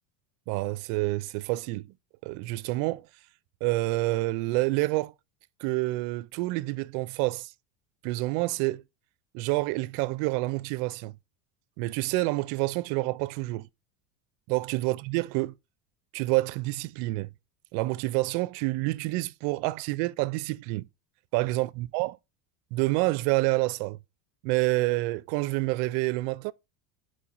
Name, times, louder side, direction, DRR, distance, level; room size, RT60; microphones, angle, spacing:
voice 1, 0.5-1.9 2.2-3.1 3.6-5.1 5.6-7.5 8.0-8.8 9.3-11.1 11.8-13.7 14.5-15.5 16.1-17.3 17.7-20.9 21.3-22.2 22.7-24.0 24.4-26.5, right 21 dB, 55° right, 0.5 m, -28 dB
4.6 x 4.4 x 4.9 m
supercardioid pair, 125°, 50 cm